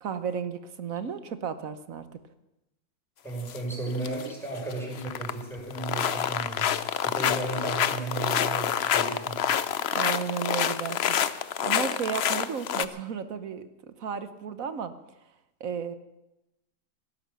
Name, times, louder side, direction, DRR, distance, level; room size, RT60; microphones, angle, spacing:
voice 1, 0.0-2.1 9.9-14.9 15.6-15.9, right 7 dB, 60° right, 11 dB, 1.3 m, -34 dB
voice 2, 3.2-6.7 7.0-9.4, right 2 dB, ahead, -2 dB, 5.7 m, -34 dB
sound 1, 3.4-3.6 3.9-4.3 4.6-5.4 5.7-12.8, left 9 dB, 60° left, 0.7 m, -27 dB
17.0 x 11.5 x 7.0 m, 0.94 s
omnidirectional pair, 1.7 m